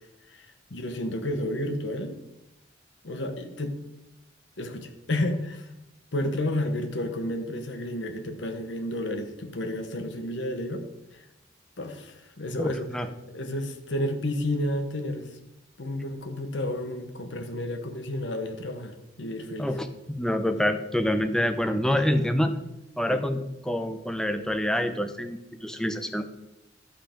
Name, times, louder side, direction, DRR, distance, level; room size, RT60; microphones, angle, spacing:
voice 1, 0.3-2.2 3.0-3.8 4.6-5.7 6.1-10.9 11.1-11.2 11.8-12.9 13.3-15.3 15.8-19.7, left 1 dB, 75° left, 6 dB, 1.1 m, -31 dB
voice 2, 19.6-22.5 23.0-26.2, left 1 dB, 5° left, 7 dB, 0.7 m, -26 dB
11.5 x 5.9 x 5.1 m, 0.93 s
head